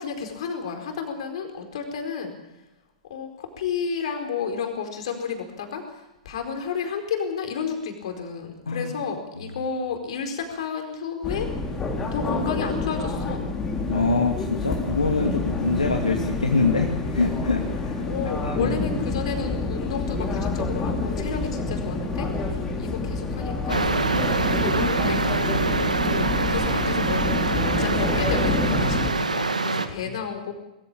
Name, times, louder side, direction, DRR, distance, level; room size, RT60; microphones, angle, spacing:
voice 1, 0.0-2.3 3.1-11.5 12.1-13.4 18.0-24.0 24.6-25.6 26.0-27.2 27.5-30.5, left 6 dB, 55° left, 5 dB, 4.4 m, -32 dB
sound 1, 11.2-29.1, left 3 dB, 15° left, 4.0 m, -28 dB
voice 2, 13.9-18.0 18.4-18.7 19.1-19.2, left 3 dB, 75° left, 2 dB, 2.3 m, -24 dB
sound 2, 23.7-29.9, right 3 dB, 80° right, 1.7 m, -25 dB
22.0 x 15.0 x 8.9 m, 0.93 s
figure-of-eight pair, 105°, 4 cm